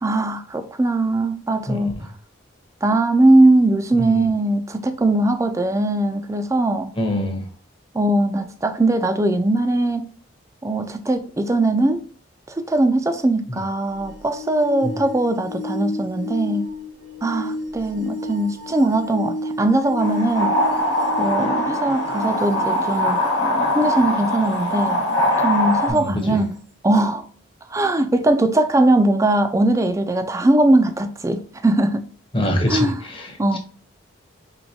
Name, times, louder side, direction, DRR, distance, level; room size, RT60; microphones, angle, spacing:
voice 1, 0.0-1.9 2.8-6.9 7.9-10.1 10.6-12.0 12.5-16.7 17.2-20.6 21.2-23.2 23.7-25.0 25.4-26.6 26.8-27.3 27.7-32.1 32.7-32.9 33.4-33.6, right 2 dB, 15° right, 0.3 m, -20 dB
voice 2, 1.7-2.1 4.0-4.3 6.9-7.5 13.5-13.6 14.8-15.0 25.9-26.4 32.3-33.6, equal, 25° left, 0.7 m, -25 dB
sound 1, 13.9-23.6 25.9-26.0, left 1 dB, 70° right, 0.8 m, -32 dB
sound 2, 20.0-25.9, left 1 dB, 70° left, 1.1 m, -22 dB
4.5 x 3.1 x 2.7 m
head